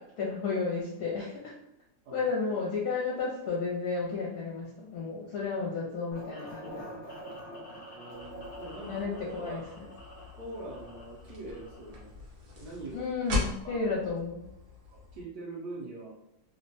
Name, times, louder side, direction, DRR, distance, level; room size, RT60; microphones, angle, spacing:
voice 1, 0.0-1.6 2.1-6.9 8.9-9.6 12.9-14.4, left 4 dB, 75° left, -4 dB, 1.2 m, -32 dB
sound 1, 6.1-12.1, equal, 55° left, 0.9 m, -46 dB
voice 2, 7.9-9.0 9.3-9.8 10.3-12.1 12.6-13.0 13.4-14.0 14.7-16.2, right 2 dB, 85° right, -7 dB, 1.3 m, -44 dB
sound 2, 8.2-15.2, left 2 dB, 70° right, 1.3 m, -40 dB
3.2 x 2.2 x 2.6 m, 0.79 s
omnidirectional pair, 1.7 m